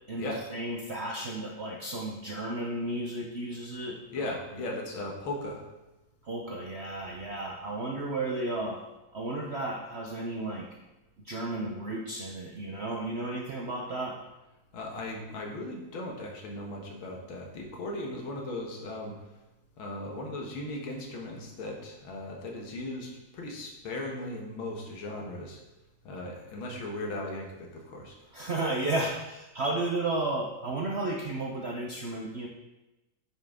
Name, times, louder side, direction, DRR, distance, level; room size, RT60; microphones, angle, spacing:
voice 1, 0.1-4.0 6.2-8.8 9.1-10.7 11.2-14.2 28.3-32.5, right 2 dB, 70° right, -1 dB, 0.6 m, -33 dB
voice 2, 4.1-5.6 14.7-19.2 19.8-25.6 26.0-28.2, left 1 dB, 85° left, 0 dB, 2.1 m, -37 dB
9.2 x 5.6 x 3.6 m, 1.0 s
omnidirectional pair, 2.2 m